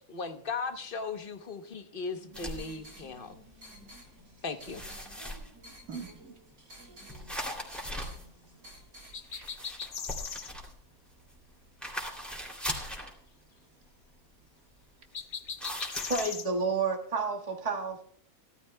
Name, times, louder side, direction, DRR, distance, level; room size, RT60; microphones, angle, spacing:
voice 1, 0.1-3.4 4.4-4.8, left 4 dB, 40° left, 1.0 m, -37 dB
sound 1, 2.1-9.2, equal, 85° right, 5.6 m, -53 dB
sound 2, 2.3-2.6 3.3-3.5 3.9-4.3 4.7-5.8 7.1-8.8 9.2-11.4 11.8-13.1 15.6-16.3, equal, ahead, 2.6 m, -39 dB
voice 2, 5.9-6.5 7.0-7.3 7.6-7.7 8.8-10.0 10.4-10.8 12.2-12.3 12.8-13.0 13.5-13.8, right 6 dB, 65° right, 1.9 m, -49 dB
sound 3, 9.1-10.5 15.1-16.5, left 7 dB, 70° left, 0.4 m, -38 dB
voice 3, 16.1-18.0, right 4 dB, 25° right, 1.6 m, -30 dB
17.5 x 13.5 x 2.2 m
omnidirectional pair, 1.7 m